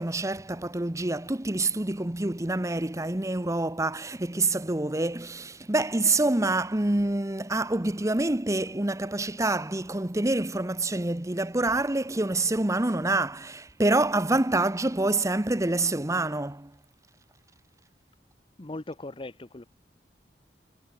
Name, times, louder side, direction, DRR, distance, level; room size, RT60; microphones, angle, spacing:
voice 1, 0.0-16.8, right 2 dB, 15° right, 1.0 m, -27 dB
voice 2, 18.6-19.7, left 2 dB, 30° left, 0.8 m, -39 dB
head